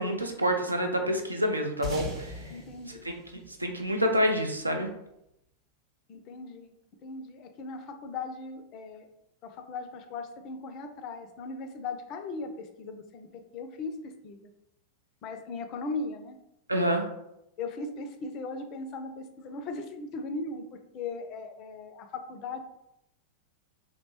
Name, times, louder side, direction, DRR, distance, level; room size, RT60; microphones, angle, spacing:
voice 1, 0.0-2.4 3.0-3.1 3.6-4.9 16.7-17.1, equal, 85° right, 4 dB, 0.4 m, -27 dB
sound 1, 1.8-4.6, equal, 30° right, 0.7 m, -40 dB
voice 2, 2.5-3.1 6.1-6.7 7.0-9.1 9.4-14.0 14.2-14.4 15.2-16.4 17.6-20.6 20.9-22.6, left 3 dB, 40° left, 6 dB, 0.3 m, -38 dB
2.7 x 2.1 x 2.9 m, 0.81 s
figure-of-eight pair, 90°, 0 cm